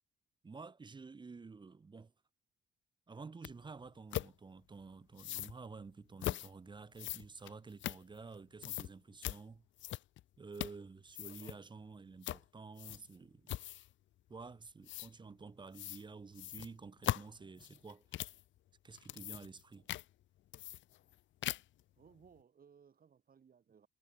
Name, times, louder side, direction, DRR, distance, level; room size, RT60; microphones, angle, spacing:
voice 1, 0.4-2.1 3.1-9.6 10.4-13.6 14.3-18.1 18.8-19.9, right 4 dB, 25° right, 0.8 m, -51 dB
sound 1, 3.4-3.5 4.1-4.3 5.2-5.5 6.2-6.5 7.0-8.3 8.6-8.9 9.2-9.4 9.8-10.2 10.5-10.8 11.1-11.6 12.2-12.4 12.8-13.1 13.5-13.9 14.9-15.1 15.7-16.0 16.3-18.4 18.9-19.6 19.9-20.0 20.5-21.1 21.4-21.8, left 14 dB, 70° left, 0.6 m, -40 dB
voice 2, 22.0-23.9, right 7 dB, 45° right, 4.7 m, -63 dB
cardioid pair, 90°, 20 cm